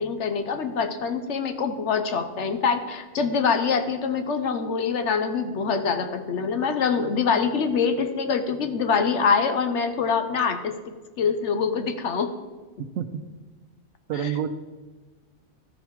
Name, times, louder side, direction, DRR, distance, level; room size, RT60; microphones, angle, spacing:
voice 1, 0.0-12.3 14.1-14.3, left 5 dB, 65° left, 8 dB, 1.0 m, -25 dB
voice 2, 14.1-14.5, right 9 dB, 85° right, 11 dB, 1.1 m, -27 dB
13.5 x 5.1 x 4.6 m, 1.3 s
omnidirectional pair, 1.4 m